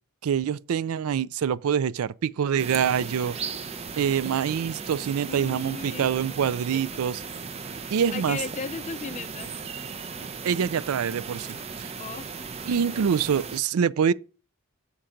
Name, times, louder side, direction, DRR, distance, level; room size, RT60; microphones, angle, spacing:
voice 1, 0.2-3.4 4.0-7.2 7.9-8.4 10.4-11.9 12.7-14.1, right 7 dB, 80° right, 0.4 m, -25 dB
sound 1, 2.6-13.6, right 5 dB, 30° right, 0.5 m, -37 dB
voice 2, 5.1-6.1 7.6-9.6 12.0-12.3, left 5 dB, 35° left, 0.4 m, -36 dB
7.3 x 5.1 x 5.7 m
head